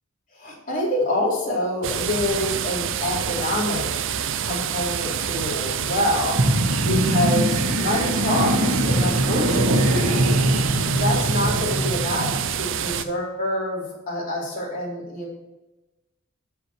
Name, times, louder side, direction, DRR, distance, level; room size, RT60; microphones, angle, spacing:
voice 1, 0.4-3.9 4.4-10.6 10.9-15.4, left 1 dB, 40° left, -5 dB, 3.8 m, -27 dB
sound 1, 1.8-13.0, right 8 dB, 60° right, 0.5 m, -27 dB
sound 2, 6.3-12.5, right 1 dB, 80° right, 1.7 m, -22 dB
13.5 x 5.1 x 4.6 m, 1.1 s
head